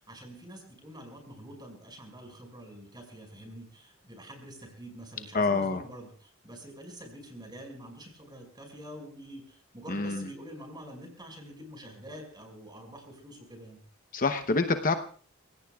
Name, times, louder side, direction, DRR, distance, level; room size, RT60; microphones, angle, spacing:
voice 1, 0.0-13.8, right 1 dB, 20° right, 3 dB, 5.7 m, -46 dB
voice 2, 5.3-5.8 9.9-10.3 14.1-14.9, left 3 dB, 40° left, 7 dB, 0.9 m, -26 dB
30.0 x 17.0 x 2.4 m, 0.42 s
head